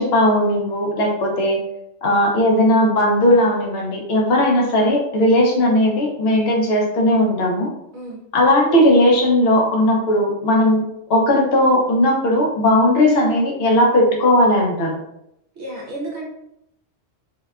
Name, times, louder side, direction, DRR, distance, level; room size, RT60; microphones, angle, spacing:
voice 1, 0.0-1.6 2.0-7.7 8.3-15.0, left 1 dB, 60° left, -1 dB, 0.8 m, -17 dB
voice 2, 15.6-16.3, right 1 dB, 70° right, -3 dB, 0.8 m, -31 dB
2.7 x 2.1 x 2.3 m, 0.81 s
omnidirectional pair, 1.3 m